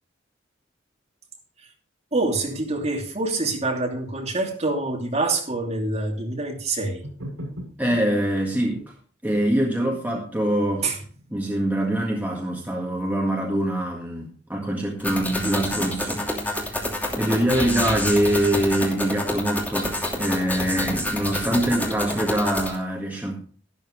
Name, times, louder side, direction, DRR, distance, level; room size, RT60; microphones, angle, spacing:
voice 1, 2.1-7.0 10.8-11.0, right 2 dB, 35° right, 2.8 m, -26 dB
sound 1, 7.0-8.1 8.7-8.9 9.3-11.4, equal, 80° right, 6.6 m, -39 dB
voice 2, 7.8-8.8 9.2-10.9 11.3-23.4, right 1 dB, 10° right, 1.8 m, -24 dB
sound 2, 15.0-22.8, left 1 dB, 10° left, 2.8 m, -28 dB
12.5 x 12.0 x 3.2 m
head